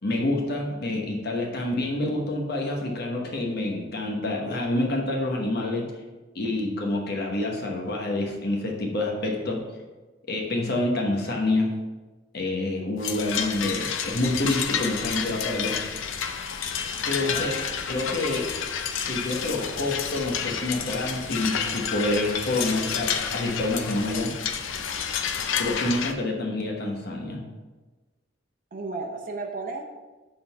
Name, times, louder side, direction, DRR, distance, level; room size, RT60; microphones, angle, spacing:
voice 1, 0.0-5.9 6.3-9.6 10.3-11.7 12.3-15.8 17.1-17.6 17.9-18.5 19.1-24.3 25.6-27.4, left 2 dB, 55° left, 0 dB, 1.1 m, -27 dB
sound 1, 13.0-26.1, left 7 dB, 75° left, 0.5 m, -30 dB
voice 2, 17.2-17.6 18.1-18.4 28.7-29.8, right 3 dB, 45° right, 1 dB, 0.7 m, -35 dB
6.8 x 3.9 x 5.3 m, 1.2 s
head